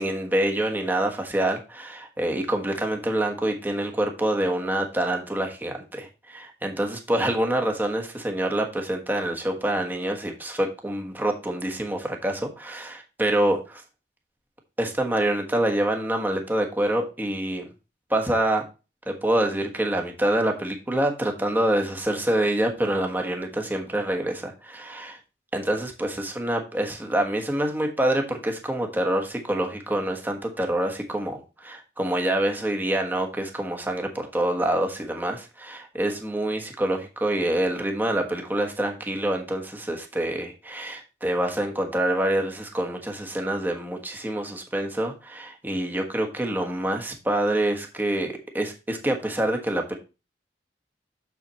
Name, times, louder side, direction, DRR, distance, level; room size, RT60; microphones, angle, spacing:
voice 1, 0.0-13.8 14.8-17.7 18.1-18.7 19.1-25.2 25.5-50.0, right 1 dB, 10° right, 2 dB, 1.3 m, -26 dB
7.1 x 6.9 x 3.0 m, 0.29 s
head